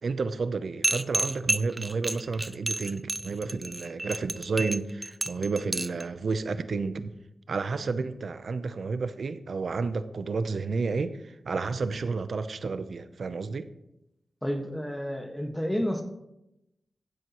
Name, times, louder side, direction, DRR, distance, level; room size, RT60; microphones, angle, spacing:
voice 1, 0.0-7.1 7.5-13.7, right 4 dB, 75° right, 12 dB, 0.7 m, -31 dB
sound 1, 0.8-6.0, right 1 dB, 20° right, 0.4 m, -30 dB
voice 2, 14.4-16.0, equal, 10° left, 4 dB, 1.6 m, -30 dB
15.5 x 7.7 x 3.1 m, 0.86 s
cardioid pair, 55°, 0 cm